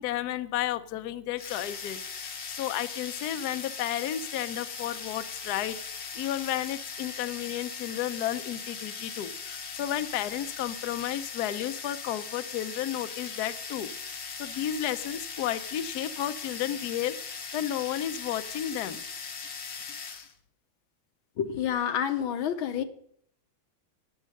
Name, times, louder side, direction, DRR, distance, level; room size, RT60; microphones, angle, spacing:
voice 1, 0.0-19.0, left 11 dB, 65° left, 11 dB, 1.0 m, -33 dB
sound 1, 1.4-20.3, left 5 dB, 45° left, 1.0 m, -39 dB
voice 2, 21.4-22.8, left 9 dB, 85° left, 7 dB, 1.8 m, -28 dB
13.0 x 9.0 x 6.3 m, 0.67 s
omnidirectional pair, 2.2 m